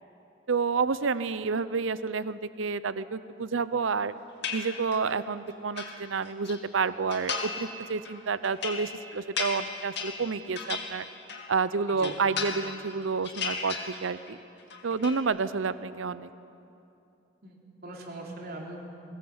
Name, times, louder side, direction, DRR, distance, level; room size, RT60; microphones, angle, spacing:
voice 1, 0.5-4.1 4.5-11.1 11.5-14.4 14.8-16.3, right 5 dB, 90° right, 15 dB, 0.6 m, -29 dB
sound 1, 4.4-5.1 5.5-6.6 7.1-7.7 8.0-11.6 11.9-12.9 13.2-14.3 14.6-15.2, left 5 dB, 65° left, 2.4 m, -35 dB
voice 2, 17.4-18.8, right 2 dB, 55° right, -1 dB, 3.6 m, -41 dB
22.0 x 19.0 x 7.9 m, 2.7 s
head